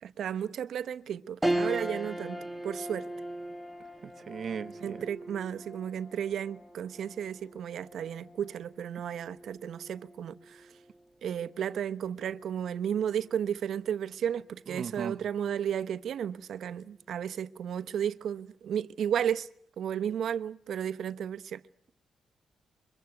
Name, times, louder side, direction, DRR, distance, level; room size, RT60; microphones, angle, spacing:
voice 1, 0.0-3.0 4.8-10.7 11.2-19.5 19.8-21.6, right 9 dB, 65° right, 1.1 m, -33 dB
sound 1, 1.4-11.0 11.5-11.6 12.9-13.4, right 1 dB, 5° right, 1.5 m, -38 dB
voice 2, 4.0-5.0 14.7-15.2, right 6 dB, 45° right, 1.2 m, -38 dB
29.5 x 24.0 x 8.0 m
cardioid pair, 140°, 0 cm